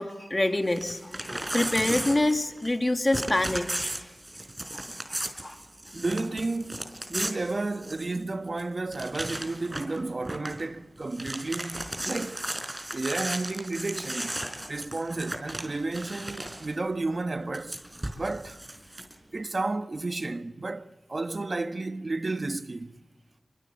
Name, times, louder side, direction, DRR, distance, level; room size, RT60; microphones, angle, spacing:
voice 1, 0.0-3.9 4.7-4.8 5.1-5.6, left 1 dB, 35° left, 3.0 m, -27 dB
Crumpling crinkling / Tearing, 0.7-2.8 3.1-8.2 8.6-8.7 8.9-10.0 10.2-10.6 11.0-16.7 17.5-19.1, right 1 dB, 25° right, 4.9 m, -35 dB
voice 2, 5.9-12.4 12.9-14.4 14.7-17.8 18.2-18.6 19.3-23.0, right 2 dB, 55° right, 1.3 m, -32 dB
25.5 x 25.0 x 7.7 m
cardioid pair, 45°, 0 cm